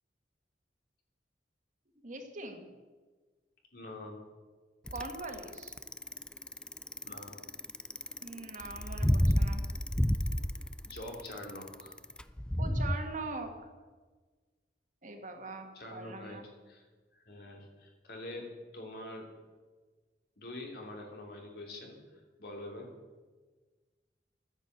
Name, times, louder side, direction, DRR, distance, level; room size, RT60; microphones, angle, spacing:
voice 1, 2.0-2.7 4.9-5.7 8.2-9.6 12.6-13.5 15.0-16.5, right 3 dB, 45° right, 4 dB, 1.8 m, -42 dB
voice 2, 3.7-4.2 7.0-7.4 10.8-11.9 15.7-16.4 16.7-16.9 17.1-19.3 20.4-22.9, left 1 dB, 60° left, 0 dB, 3.1 m, -45 dB
Bicycle, 4.9-12.9, equal, 5° left, 0.4 m, -30 dB
12.0 x 9.6 x 8.0 m, 1.4 s
head